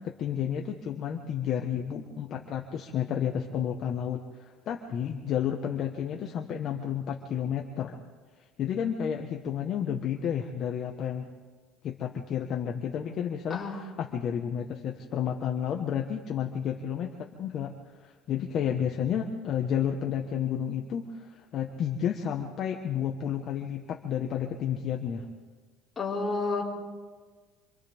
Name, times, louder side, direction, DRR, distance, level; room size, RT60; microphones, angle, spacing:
voice 1, 0.0-7.9 8.6-11.3 11.8-17.7 18.0-25.3, left 8 dB, 40° left, 2 dB, 1.3 m, -31 dB
voice 2, 13.5-13.8 26.0-26.6, left 3 dB, 15° left, -6 dB, 4.8 m, -30 dB
27.5 x 26.5 x 3.6 m, 1.4 s
cardioid pair, 160°, 0 cm